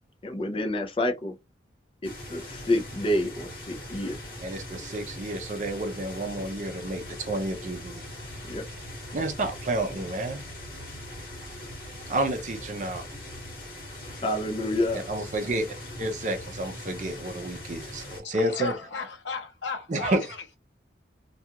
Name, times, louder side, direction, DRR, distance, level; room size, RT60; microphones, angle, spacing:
voice 1, 0.2-1.4 2.0-4.2 8.5-8.6 14.0-15.0, left 1 dB, 30° left, 0.5 m, -28 dB
sound 1, 2.0-18.2, left 1 dB, 50° left, 1.2 m, -41 dB
voice 2, 4.4-8.1 9.1-10.4 12.1-13.1 14.9-15.7 16.0-18.7 19.9-20.2, right 1 dB, 40° right, 0.5 m, -30 dB
voice 3, 18.2-20.5, left 4 dB, 85° left, 0.6 m, -35 dB
2.3 x 2.3 x 2.8 m
head